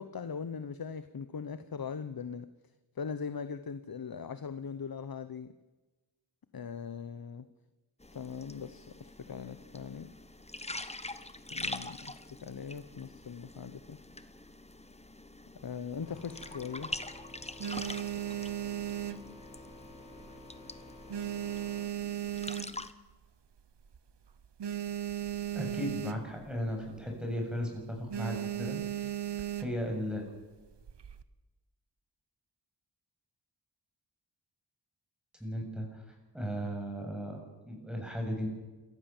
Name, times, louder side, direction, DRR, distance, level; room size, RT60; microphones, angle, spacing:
voice 1, 0.0-2.5 3.0-5.5 6.5-7.5 8.1-10.1 11.5-12.1 12.4-14.0 15.6-16.9, left 6 dB, 55° left, 12 dB, 0.9 m, -40 dB
sound 1, 8.0-22.9, left 2 dB, 15° left, 1.1 m, -45 dB
sound 2, 16.0-21.8, left 2 dB, 75° left, 6.3 m, -52 dB
sound 3, 16.3-17.0 17.4-19.9 20.2-20.6 20.9-23.1 23.6-23.7 23.9-24.0 24.3-26.5 26.8-27.1 27.4-27.7 28.1-29.9 30.7-31.2, right 12 dB, 70° right, 1.1 m, -36 dB
voice 2, 25.5-29.1 29.6-30.3 35.4-36.0 36.3-38.5, equal, ahead, 1 dB, 7.6 m, -36 dB
27.5 x 15.0 x 7.3 m, 1.2 s
wide cardioid pair, 85°, 44 cm